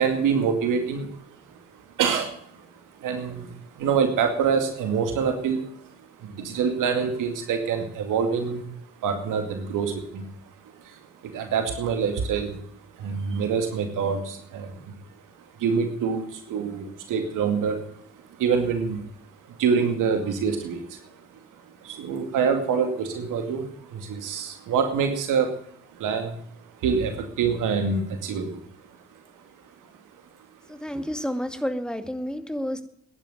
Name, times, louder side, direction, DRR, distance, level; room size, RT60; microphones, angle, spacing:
voice 1, 0.0-2.7 2.9-8.7 9.0-10.3 10.7-12.6 12.9-14.9 15.6-17.9 18.1-19.1 19.5-21.2 21.6-25.5 25.9-26.4 26.8-28.6 28.9-29.0, right 6 dB, 70° right, 6 dB, 2.3 m, -26 dB
voice 2, 30.7-32.8, equal, ahead, 8 dB, 2.3 m, -30 dB
11.0 x 10.5 x 9.2 m, 0.68 s
hypercardioid pair, 50°, 32 cm